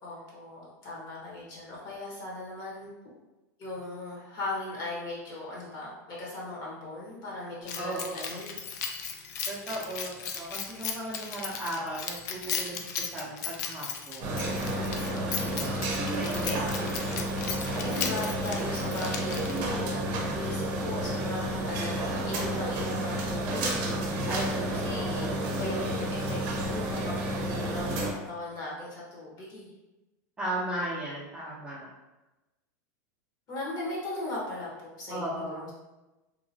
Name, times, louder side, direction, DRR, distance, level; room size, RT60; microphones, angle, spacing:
voice 1, 0.0-2.9 3.6-8.6 14.7-15.6 16.1-16.6 17.7-24.2 24.7-29.7 33.5-35.7, left 2 dB, 40° left, -5 dB, 1.2 m, -38 dB
Keys jangling, 7.7-19.8, left 6 dB, 65° left, 0.4 m, -36 dB
voice 2, 7.8-8.4 9.5-14.4 15.1-16.9 24.3-25.4 30.4-31.9 35.1-35.7, right 1 dB, 10° right, -8 dB, 0.7 m, -37 dB
sound 1, 14.2-28.1, right 1 dB, 55° right, 0.7 m, -31 dB
2.9 x 2.2 x 2.7 m, 1.0 s
supercardioid pair, 120°, 10 cm